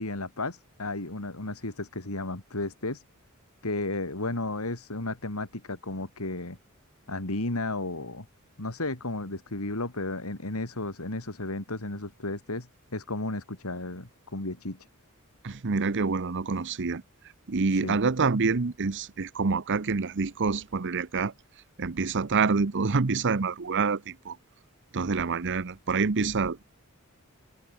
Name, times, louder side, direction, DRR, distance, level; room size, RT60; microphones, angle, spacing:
voice 1, 0.0-3.0 3.6-6.6 7.1-8.2 8.6-14.8 17.7-18.0, left 2 dB, 80° left, 3.0 m, -33 dB
voice 2, 15.4-17.0 17.5-21.3 21.8-24.4 24.9-26.6, right 4 dB, 55° right, 0.8 m, -27 dB
head